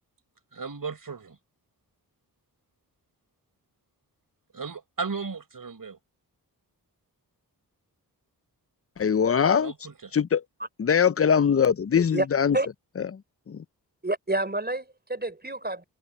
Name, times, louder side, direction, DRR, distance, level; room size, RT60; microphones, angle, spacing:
voice 1, 0.5-1.4 4.5-6.0 9.5-10.1, right 5 dB, 55° right, 5.3 m, -35 dB
voice 2, 9.0-9.7 10.1-10.4 10.8-12.6 13.5-13.6, left 7 dB, 35° left, 0.6 m, -22 dB
voice 3, 14.0-15.8, right 2 dB, 25° right, 5.0 m, -28 dB
cardioid pair, 45°, 40 cm